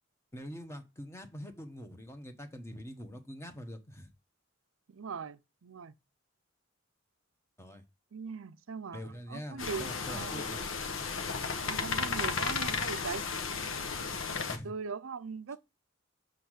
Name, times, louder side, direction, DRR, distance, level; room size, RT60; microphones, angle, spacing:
voice 1, 0.3-4.1 7.6-7.8 8.9-10.7 14.5-14.7, equal, 15° left, 1.1 m, -44 dB
voice 2, 4.9-5.9 8.1-10.6 11.5-13.3 14.6-15.6, right 5 dB, 80° right, 0.5 m, -40 dB
sound 1, 9.6-14.6, left 5 dB, 75° left, 1.0 m, -34 dB
6.4 x 5.6 x 6.2 m
head